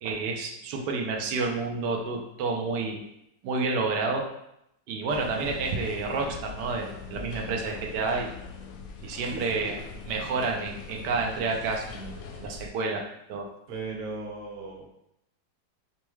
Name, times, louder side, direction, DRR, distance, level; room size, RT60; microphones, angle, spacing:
voice 1, 0.0-3.0 3.4-4.3 4.9-8.3 9.0-9.7 10.1-13.5, right 4 dB, 90° right, 1 dB, 1.3 m, -30 dB
sound 1, 5.1-12.7, left 4 dB, 75° left, 0.6 m, -41 dB
voice 2, 9.2-9.8 13.7-14.9, right 3 dB, 40° right, -2 dB, 0.8 m, -37 dB
5.5 x 2.2 x 3.1 m, 0.81 s
omnidirectional pair, 1.8 m